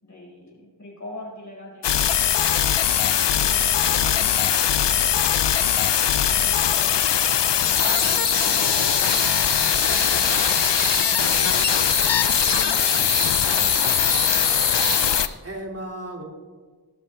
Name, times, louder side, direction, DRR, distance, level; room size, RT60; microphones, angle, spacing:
voice 1, 0.0-2.5 3.0-5.2 6.1-7.3 7.6-11.9 12.3-13.8, left 1 dB, 45° left, -4 dB, 5.1 m, -44 dB
sound 1, 1.8-15.3, left 9 dB, 85° left, 0.6 m, -21 dB
sound 2, 7.7-15.2, right 3 dB, 55° right, 1.7 m, -29 dB
voice 2, 15.0-16.2, right 1 dB, 35° right, 1 dB, 2.5 m, -36 dB
18.0 x 12.5 x 3.4 m, 1.5 s
wide cardioid pair, 80°, 41 cm